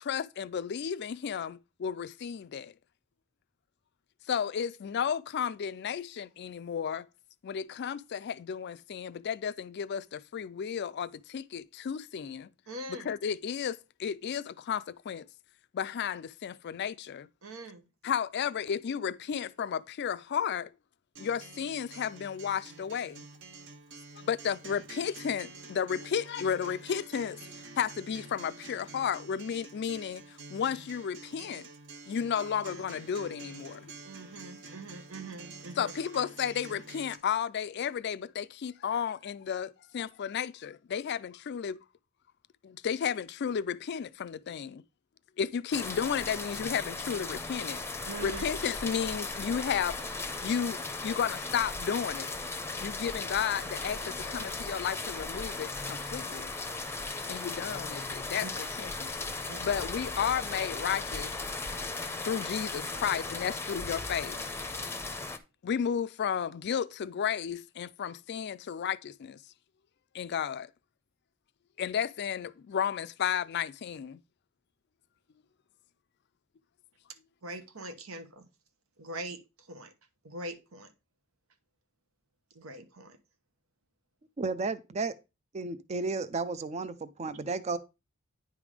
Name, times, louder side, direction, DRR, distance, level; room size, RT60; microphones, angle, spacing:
voice 1, 0.0-2.7 4.3-7.1 7.4-12.5 12.9-15.3 15.7-17.3 18.0-20.7 21.2-23.2 24.1-31.7 32.1-33.9 35.8-41.8 42.6-44.8 45.4-50.1 50.4-52.3 52.8-56.5 57.3-59.1 59.6-61.3 62.2-64.4 65.6-69.4 70.1-70.7 71.8-74.2, left 7 dB, 55° left, 0.4 m, -33 dB
voice 2, 12.7-13.1 17.4-17.8 34.0-35.9 48.0-48.4 58.4-58.5 59.5-59.7 77.4-78.5 79.0-79.9 80.2-80.9 82.5-83.2, right 2 dB, 85° right, 1.1 m, -42 dB
Acoustic guitar, 21.2-37.2, right 3 dB, 60° right, 1.1 m, -48 dB
sound 1, 45.7-65.4, left 3 dB, 10° left, 0.6 m, -37 dB
voice 3, 84.4-85.2 85.5-87.8, right 3 dB, 30° right, 0.4 m, -33 dB
9.7 x 3.5 x 4.9 m
head